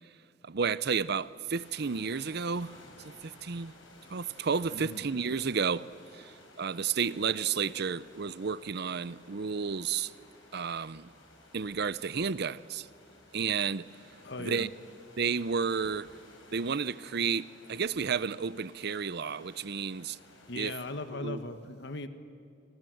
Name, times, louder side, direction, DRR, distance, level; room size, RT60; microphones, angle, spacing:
voice 1, 0.5-2.7 3.5-3.7 4.1-5.8 6.6-10.1 10.5-11.0 11.5-12.8 13.3-13.8 14.4-14.7 15.2-16.1 16.5-20.2 20.6-20.7 21.2-21.4, right 6 dB, 60° right, 0.6 m, -31 dB
sound 1, 1.5-20.9, left 2 dB, 80° left, 6.4 m, -56 dB
voice 2, 4.7-5.1 14.2-14.7 20.5-22.1, left 2 dB, 65° left, 1.6 m, -39 dB
27.0 x 26.5 x 7.9 m
head